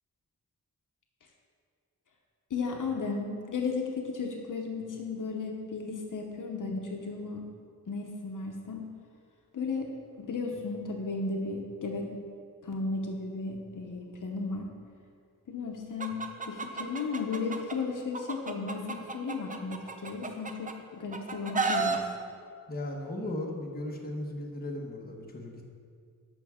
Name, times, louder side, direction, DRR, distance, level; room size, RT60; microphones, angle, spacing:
voice 1, 2.5-7.5 7.9-8.9 9.5-12.1 12.6-14.7 15.5-22.0, left 4 dB, 65° left, 2 dB, 0.8 m, -35 dB
Chicken rooster, 16.0-17.7 18.1-20.7 21.1-22.0, right 4 dB, 25° right, 0.5 m, -32 dB
voice 2, 22.7-25.6, left 1 dB, 25° left, -1 dB, 1.0 m, -36 dB
12.5 x 5.7 x 3.5 m, 2.2 s
wide cardioid pair, 175°, 34 cm